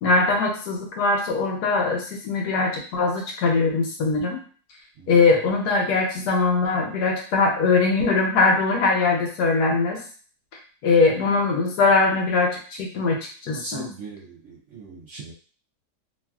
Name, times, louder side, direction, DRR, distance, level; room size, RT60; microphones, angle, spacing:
voice 1, 0.0-4.4 5.1-10.0 10.8-13.9, left 3 dB, 80° left, 0 dB, 1.2 m, -21 dB
voice 2, 13.5-15.3, right 3 dB, 70° right, -5 dB, 0.7 m, -39 dB
3.1 x 2.4 x 2.3 m, 0.41 s
omnidirectional pair, 1.7 m